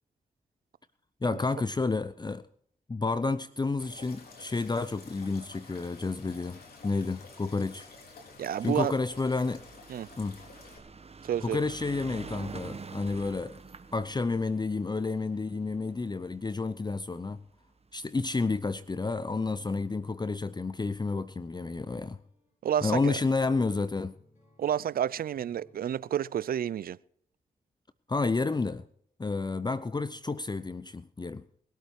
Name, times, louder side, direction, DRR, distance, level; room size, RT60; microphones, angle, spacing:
voice 1, 1.2-2.5 2.9-7.9 8.6-9.6 10.2-10.4 11.4-13.6 13.9-17.4 17.9-22.2 22.8-24.1 28.1-28.8 29.2-31.4, left 3 dB, 25° left, 0.7 m, -30 dB
sound 1, 3.8-10.8, left 3 dB, 70° left, 3.9 m, -51 dB
voice 2, 8.4-8.9 9.9-10.1 11.3-11.6 22.6-23.2 24.6-27.0, right 10 dB, 65° right, 0.5 m, -30 dB
sound 2, 9.0-17.5 18.3-18.4 18.6-18.7 18.9-19.0, right 4 dB, 40° right, 1.3 m, -46 dB
sound 3, 20.0-26.1, left 2 dB, 50° left, 7.4 m, -64 dB
21.5 x 8.4 x 4.9 m
supercardioid pair, 40°, 16 cm